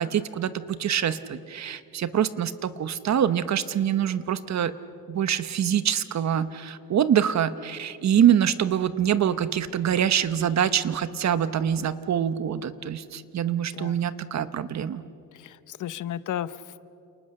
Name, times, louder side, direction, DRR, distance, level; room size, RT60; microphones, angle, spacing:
voice 1, 0.0-4.7 5.1-15.0, right 9 dB, 45° right, 13 dB, 1.0 m, -25 dB
voice 2, 15.3-16.9, left 11 dB, 55° left, 15 dB, 0.8 m, -34 dB
30.0 x 28.0 x 6.6 m, 2.7 s
cardioid pair, 160°, 37 cm